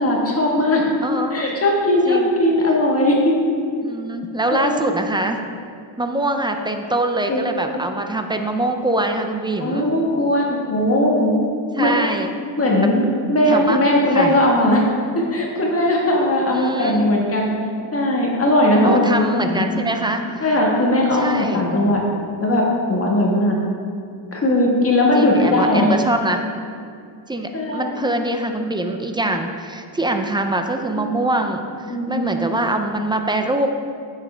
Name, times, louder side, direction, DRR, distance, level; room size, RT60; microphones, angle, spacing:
voice 1, 0.0-0.8 1.3-3.3 4.5-4.8 7.3-7.4 9.6-11.3 11.8-11.9 12.6-14.8 15.1-17.5 17.9-19.9 20.4-22.0 22.4-23.6 24.3-26.0 27.5-27.9 31.0-31.1 31.9-32.4, left 1 dB, 30° left, -2 dB, 1.4 m, -18 dB
voice 2, 1.0-1.5 2.1-2.3 3.8-5.4 6.0-9.9 11.8-12.3 12.8-12.9 13.5-13.8 14.1-14.4 16.5-17.2 18.8-20.2 21.1-21.7 25.1-26.5 27.3-33.7, right 1 dB, 10° right, 5 dB, 0.3 m, -23 dB
9.7 x 7.2 x 3.3 m, 2.3 s
cardioid pair, 140°, 50 cm